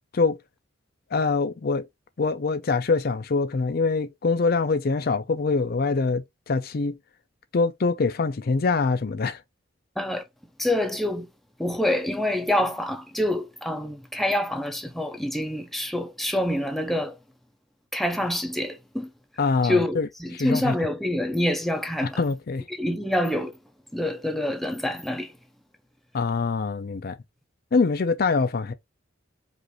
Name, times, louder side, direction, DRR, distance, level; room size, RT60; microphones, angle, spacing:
voice 1, 1.1-1.8 2.2-7.0 7.5-9.4 19.4-20.1 20.3-20.7 22.2-22.6 26.1-27.2 27.7-28.7, left 4 dB, 50° left, 0.5 m, -24 dB
voice 2, 10.6-11.3 11.6-17.2 17.9-19.1 19.6-22.2 22.7-23.5 23.9-25.3, left 1 dB, ahead, 0.5 m, -26 dB
5.0 x 2.5 x 3.0 m
head